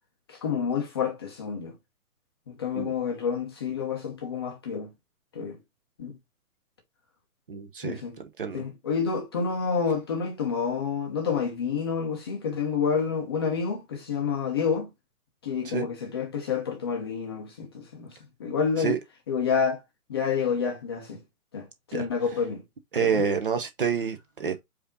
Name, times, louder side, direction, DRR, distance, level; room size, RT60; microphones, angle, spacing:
voice 1, 0.3-1.7 2.5-4.9 5.3-5.6 6.0-6.2 7.8-8.2 8.5-14.9 15.4-19.0 19.3-19.8 20.1-21.2 21.5-22.6 23.0-23.2, left 6 dB, 15° left, 0.6 m, -29 dB
voice 2, 7.5-8.6 15.6-15.9 18.8-19.0 21.9-22.1 22.9-24.6, right 6 dB, 40° right, 0.6 m, -28 dB
4.9 x 2.7 x 3.7 m
figure-of-eight pair, 130°, 44 cm